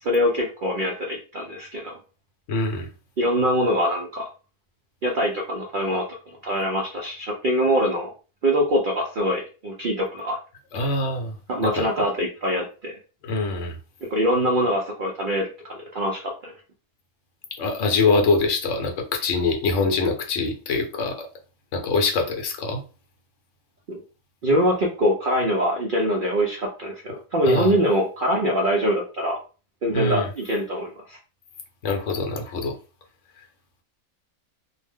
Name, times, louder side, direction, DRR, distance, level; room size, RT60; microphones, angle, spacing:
voice 1, 0.0-2.0 3.2-4.3 5.0-8.1 8.4-10.4 11.5-13.0 14.0-16.5 23.9-24.0 24.4-29.4 29.8-31.2, equal, 75° right, -1 dB, 0.4 m, -24 dB
voice 2, 2.5-2.9 10.7-11.9 13.2-13.8 17.5-21.3 21.7-22.8 27.4-27.7 29.9-30.3 31.8-32.8, left 3 dB, 60° left, 3 dB, 1.0 m, -24 dB
2.7 x 2.1 x 3.4 m, 0.35 s
omnidirectional pair, 1.6 m